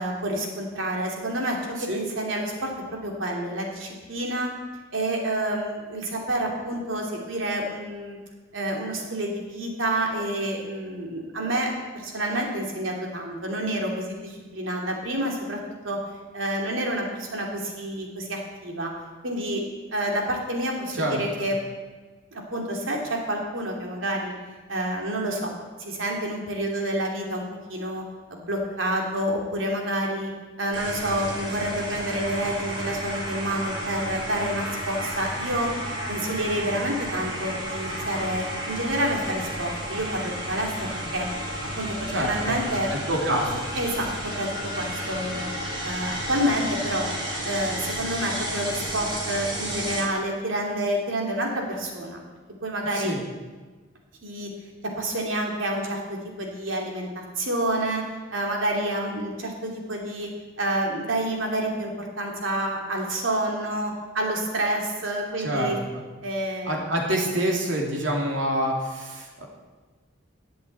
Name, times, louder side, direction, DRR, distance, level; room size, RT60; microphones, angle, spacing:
voice 1, 0.0-4.5 4.9-8.2 8.5-11.7 11.9-16.0 16.3-18.9 19.2-19.6 19.9-21.6 22.3-24.3 24.7-25.5 25.8-27.4 27.7-28.0 28.3-30.3 30.6-35.7 36.1-41.3 41.7-42.9 43.7-44.5 44.8-45.5 45.8-47.1 47.4-52.2 52.6-53.2 54.2-54.5 54.8-58.0 58.3-60.3 60.6-65.8 66.2-66.8, right 1 dB, 90° right, 0 dB, 2.8 m, -28 dB
sound 1, 30.7-50.0, equal, 25° right, 3.4 m, -32 dB
voice 2, 42.1-43.7 52.9-53.2 65.4-66.0 66.6-69.4, right 1 dB, 70° right, 0 dB, 2.8 m, -27 dB
12.5 x 7.8 x 8.0 m, 1.3 s
head